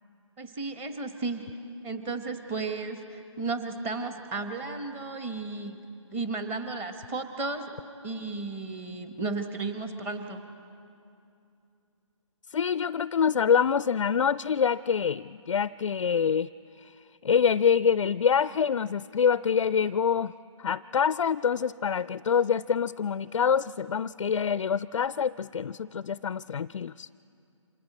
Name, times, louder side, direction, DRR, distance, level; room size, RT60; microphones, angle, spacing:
voice 1, 0.4-1.5 1.8-5.8 6.1-7.7 8.0-10.4, right 3 dB, 10° right, 7 dB, 1.0 m, -34 dB
voice 2, 12.5-16.5 16.8-16.9 17.2-20.3 20.6-27.1, left 7 dB, 70° left, 17 dB, 0.4 m, -26 dB
30.0 x 26.5 x 4.2 m, 2.6 s
figure-of-eight pair, 155°, 17 cm